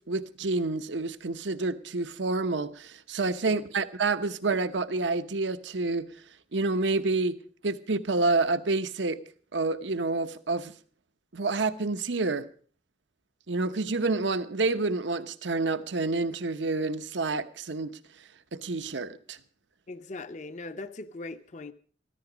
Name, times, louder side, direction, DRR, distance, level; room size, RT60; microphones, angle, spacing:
voice 1, 0.0-6.1 6.5-7.4 7.6-9.2 9.5-10.7 11.3-12.5 13.5-18.0 18.5-19.4, right 3 dB, 85° right, 0.9 m, -28 dB
voice 2, 19.9-21.7, left 2 dB, 40° left, 0.6 m, -40 dB
14.5 x 13.5 x 5.0 m
head